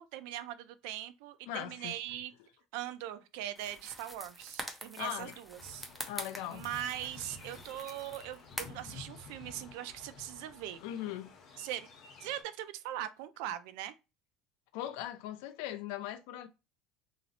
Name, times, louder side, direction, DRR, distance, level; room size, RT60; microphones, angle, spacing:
voice 1, 0.0-2.3 2.7-5.9 6.5-10.8 11.6-11.9 12.2-13.9, right 12 dB, 75° right, 0.4 m, -41 dB
voice 2, 1.5-1.9 5.0-5.3 6.1-6.6 10.8-11.3 14.7-16.5, left 12 dB, 75° left, 0.4 m, -39 dB
sound 1, 3.6-8.9, equal, 5° right, 0.5 m, -45 dB
sound 2, 5.6-12.4, left 4 dB, 45° left, 0.9 m, -52 dB
2.8 x 2.0 x 4.0 m
cardioid pair, 155°, 0 cm